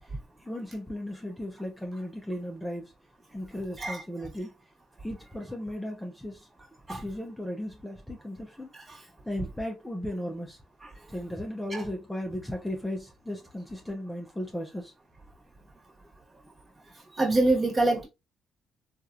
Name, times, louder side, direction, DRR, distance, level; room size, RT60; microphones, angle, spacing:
voice 1, 0.4-2.9 3.3-4.5 5.0-6.5 6.9-10.6 11.1-14.9, left 1 dB, 5° left, 0.6 m, -36 dB
voice 2, 17.1-18.1, right 2 dB, 30° right, 1.2 m, -25 dB
2.9 x 2.4 x 2.4 m
cardioid pair, 90°, 0 cm